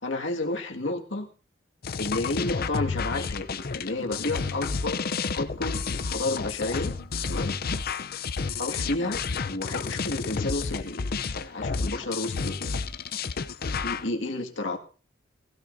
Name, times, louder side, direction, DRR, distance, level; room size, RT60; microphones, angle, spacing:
voice 1, 0.0-1.3 2.0-5.1 5.3-6.9 7.3-7.5 8.6-9.2 9.5-11.1 11.4-12.7 13.8-14.8, left 2 dB, 75° left, 2 dB, 2.0 m, -31 dB
sound 1, 1.8-14.1, left 5 dB, 55° left, 0.6 m, -31 dB
19.0 x 16.0 x 2.7 m, 0.38 s
head